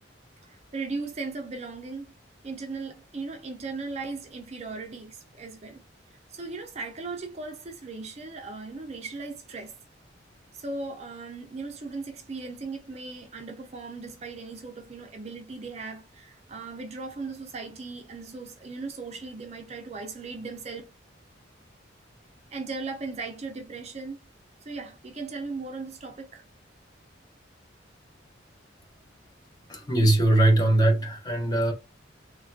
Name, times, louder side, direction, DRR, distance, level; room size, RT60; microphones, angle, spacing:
voice 1, 0.4-2.1 2.4-5.9 6.3-9.7 10.5-20.8 22.5-24.2 24.6-26.4, right 3 dB, 35° right, 0.5 m, -37 dB
voice 2, 29.7-31.7, right 1 dB, 20° left, 0.8 m, -21 dB
3.2 x 2.2 x 2.5 m
head